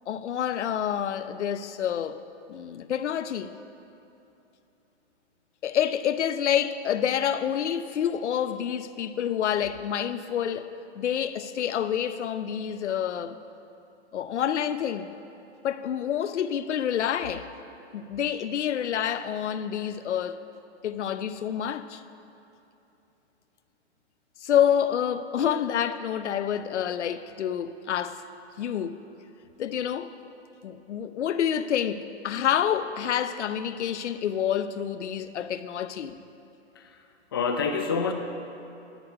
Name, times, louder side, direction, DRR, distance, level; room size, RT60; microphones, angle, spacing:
voice 1, 0.1-2.2 2.5-3.5 5.6-13.4 14.1-15.1 15.6-17.5 17.9-20.4 20.8-22.0 24.4-28.2 28.6-29.0 29.6-30.1 30.6-36.2, left 9 dB, 80° left, 0.7 m, -28 dB
voice 2, 36.8-38.1, left 5 dB, 20° left, 0.4 m, -28 dB
11.5 x 6.7 x 8.0 m
hypercardioid pair, 165°, 34 cm